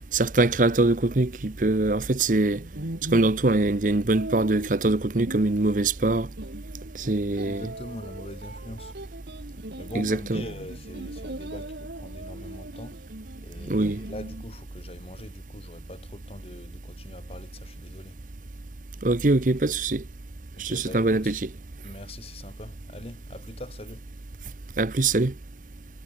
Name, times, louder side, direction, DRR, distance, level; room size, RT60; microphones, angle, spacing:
voice 1, 0.1-2.6 3.1-6.3 6.9-7.6 9.9-10.4 13.7-14.0 19.0-20.0 20.6-21.4 24.8-25.3, right 2 dB, 50° right, 0.8 m, -23 dB
sound 1, 2.5-14.4, right 1 dB, 75° right, 2.5 m, -40 dB
voice 2, 7.4-9.0 9.8-13.0 13.4-18.2 20.5-21.4 21.8-24.0, left 1 dB, 35° left, 2.0 m, -42 dB
head